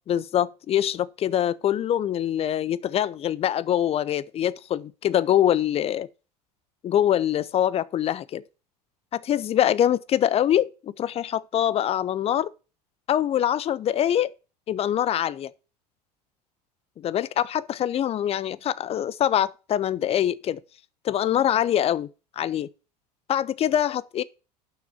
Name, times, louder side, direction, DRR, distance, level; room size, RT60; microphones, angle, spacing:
voice 1, 0.1-6.1 6.8-8.4 9.1-12.5 13.1-14.3 14.7-15.5 17.0-20.6 21.0-22.1 22.4-22.7 23.3-24.2, left 10 dB, 30° left, 0.5 m, -24 dB
6.6 x 6.0 x 7.0 m
figure-of-eight pair, 75°, 21 cm